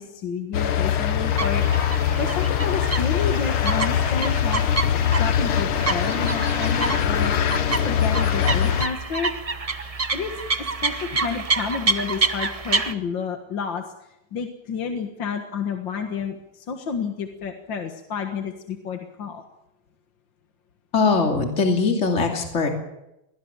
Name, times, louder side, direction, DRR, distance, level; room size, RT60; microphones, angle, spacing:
voice 1, 0.0-1.7 2.2-4.6 5.2-7.4 7.8-9.3 10.1-13.8 14.3-19.4, left 6 dB, 60° left, 5 dB, 2.2 m, -30 dB
sound 1, 0.5-8.9, left 9 dB, 75° left, 2.1 m, -22 dB
sound 2, 1.2-12.9, right 3 dB, 40° right, 0.5 m, -28 dB
voice 2, 20.9-22.7, left 4 dB, 35° left, 2 dB, 3.0 m, -21 dB
22.5 x 18.5 x 7.4 m, 0.89 s
omnidirectional pair, 2.4 m